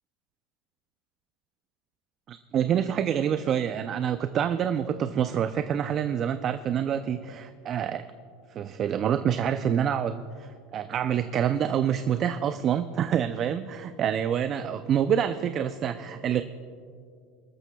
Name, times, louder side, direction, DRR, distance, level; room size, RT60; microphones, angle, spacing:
voice 1, 2.3-8.0 8.5-16.4, right 9 dB, 40° right, 10 dB, 0.4 m, -27 dB
25.0 x 13.0 x 2.3 m, 2.3 s
supercardioid pair, 110°, 0 cm